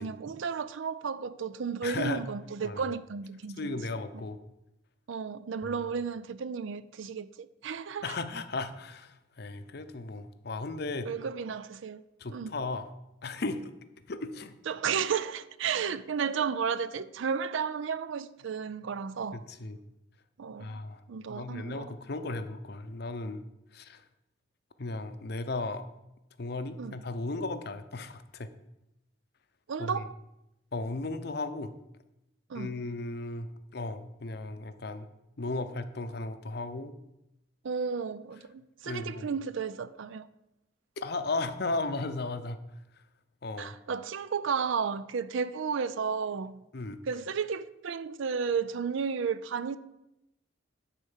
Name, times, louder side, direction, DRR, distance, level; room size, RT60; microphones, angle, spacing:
voice 1, 0.0-3.8 5.1-8.2 11.1-12.0 12.3-12.5 14.7-19.4 20.4-20.8 21.1-21.9 26.8-26.9 29.7-30.1 32.5-32.8 37.6-40.3 43.6-46.6 47.1-49.8, right 6 dB, 70° right, 0.4 m, -33 dB
voice 2, 1.8-2.2 2.6-2.8 3.6-4.4 5.6-5.8 8.0-11.1 12.2-12.9 13.2-13.7 14.1-14.5 19.3-19.8 20.6-21.0 21.3-23.4 23.7-24.0 24.8-25.8 26.4-28.5 29.8-30.0 30.7-31.7 32.5-35.1 35.4-36.9 38.8-39.3 41.0-42.6 43.4-43.7 46.7-47.0, left 2 dB, 50° left, 0.6 m, -35 dB
9.9 x 4.4 x 7.3 m
head